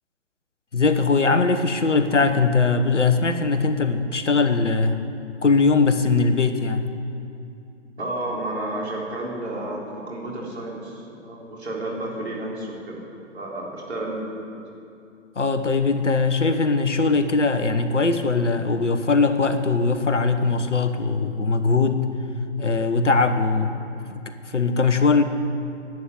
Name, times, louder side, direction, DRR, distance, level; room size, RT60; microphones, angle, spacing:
voice 1, 0.7-5.0 5.4-6.9 15.4-22.1 22.6-25.2, left 4 dB, 75° left, 8 dB, 1.2 m, -21 dB
voice 2, 8.0-13.0 13.3-14.5, right 1 dB, 60° right, -3 dB, 4.0 m, -31 dB
11.0 x 8.7 x 9.4 m, 2.7 s
figure-of-eight pair, 135°, 37 cm